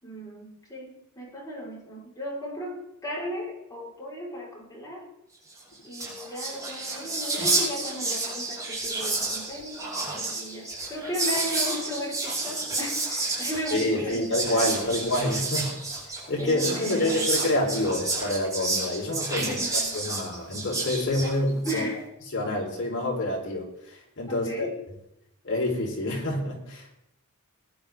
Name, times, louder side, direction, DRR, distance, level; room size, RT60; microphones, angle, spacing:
voice 1, 0.0-5.1 5.8-9.8 10.1-15.5 16.1-17.3 19.4-19.9 21.6-22.0 24.3-24.7, equal, 15° left, -4 dB, 5.2 m, -36 dB
Whispering, 5.6-5.7 5.8-21.8, right 3 dB, 15° right, 5.5 m, -30 dB
voice 2, 13.7-15.7 16.3-21.8 22.3-24.7 25.4-26.9, left 1 dB, 55° left, -2 dB, 4.5 m, -27 dB
20.5 x 10.5 x 3.9 m, 0.80 s
head